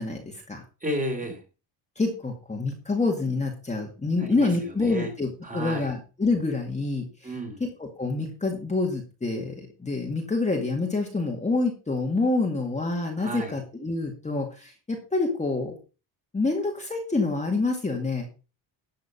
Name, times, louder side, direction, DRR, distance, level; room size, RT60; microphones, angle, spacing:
voice 1, 0.0-0.6 2.0-7.3 7.6-15.8 16.3-18.3, left 3 dB, 15° left, 1 dB, 2.0 m, -27 dB
voice 2, 0.8-1.4 4.2-5.1 5.4-5.9 7.2-7.6 13.2-13.5, right 1 dB, 15° right, 4 dB, 3.0 m, -33 dB
11.5 x 6.6 x 5.2 m, 0.33 s
cardioid pair, 140°, 46 cm